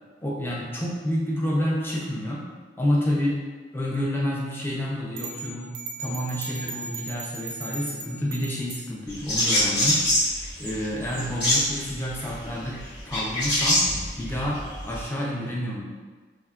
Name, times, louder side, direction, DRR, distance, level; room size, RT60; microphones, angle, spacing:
voice 1, 0.2-2.5 2.8-3.4 3.7-5.7 6.0-12.8 13.0-13.8 14.2-15.8, equal, 10° left, -4 dB, 0.4 m, -29 dB
sound 1, 5.2-8.9, right 4 dB, 75° right, 0.4 m, -37 dB
sound 2, 9.1-15.0, left 1 dB, 70° left, 1.0 m, -25 dB
2.7 x 2.3 x 2.3 m, 1.4 s
head